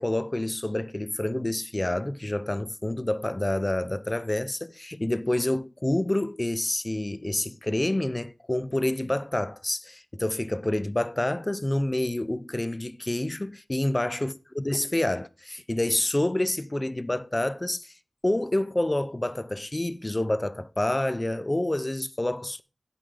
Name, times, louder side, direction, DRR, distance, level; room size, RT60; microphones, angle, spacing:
voice 1, 0.0-17.9 18.2-22.6, left 1 dB, 25° left, 0.5 m, -28 dB
9.3 x 8.0 x 3.4 m
wide cardioid pair, 55°, 0 cm